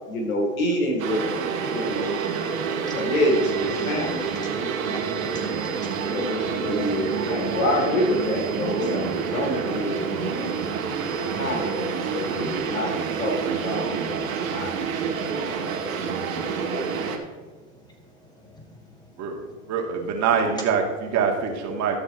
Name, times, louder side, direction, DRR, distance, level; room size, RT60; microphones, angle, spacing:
voice 1, 0.1-1.3 1.7-2.2 2.9-4.3 6.1-10.5 11.4-12.9 13.2-13.9 14.5-14.7 15.1-15.2 16.7-17.0, left 1 dB, 85° left, 2 dB, 3.2 m, -27 dB
sound 1, 1.0-17.2, right 6 dB, 85° right, 2.1 m, -28 dB
voice 2, 2.2-3.0 3.8-3.9 4.4-6.2 8.6-8.9 13.3-13.4 13.8-19.7, left 1 dB, 10° left, 0 dB, 3.2 m, -50 dB
voice 3, 19.7-22.0, right 6 dB, 40° right, 2 dB, 2.3 m, -24 dB
13.5 x 6.8 x 4.5 m, 1.4 s
hypercardioid pair, 100°, 41 cm